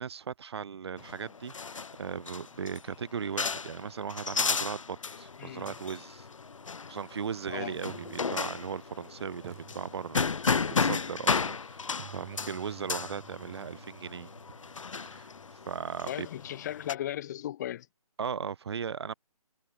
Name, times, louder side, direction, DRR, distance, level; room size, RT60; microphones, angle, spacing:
voice 1, 0.0-6.3 6.9-14.3 15.0-15.3 15.6-16.3 18.2-19.1, right 7 dB, 45° right, 3.4 m, -37 dB
sound 1, 1.0-16.9, left 5 dB, 60° left, 4.1 m, -34 dB
voice 2, 5.4-5.8 7.5-7.8 10.7-10.9 16.0-17.9, left 12 dB, 30° left, 5.9 m, -37 dB
sound 2, 6.8-6.9 7.9-9.0 9.4-10.7 12.0-15.9, right 17 dB, 25° right, 7.5 m, -53 dB
figure-of-eight pair, 150°, 19 cm